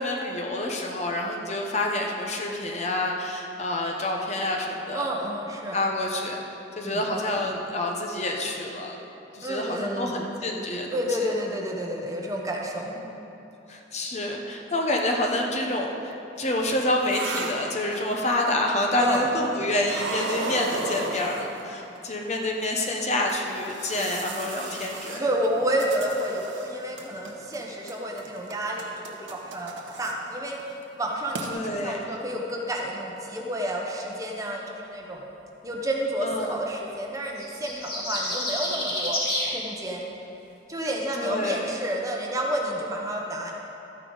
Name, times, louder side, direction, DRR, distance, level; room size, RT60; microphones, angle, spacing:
voice 1, 0.0-5.1 5.7-6.4 6.8-9.0 9.3-11.3 13.0-13.2 13.7-25.3 31.5-32.2 36.2-36.6 41.2-41.7, left 1 dB, 35° left, 1 dB, 0.9 m, -28 dB
voice 2, 4.9-5.8 6.8-7.0 9.4-10.2 10.9-13.0 19.0-19.2 25.2-29.7 30.0-30.6 31.0-35.2 35.6-39.2 39.5-40.0 40.7-43.5, right 1 dB, 15° right, -1 dB, 0.9 m, -30 dB
sound 1, 16.4-18.3 19.0-19.5 19.8-22.0 22.6-22.7 23.3-26.7 27.0-27.6 27.9-30.1 30.5-30.7 31.0-31.1 31.3-31.5, right 3 dB, 90° right, 1.1 m, -35 dB
sound 2, 37.4-39.5, left 1 dB, 55° left, 2.9 m, -29 dB
13.0 x 9.7 x 4.0 m, 2.9 s
head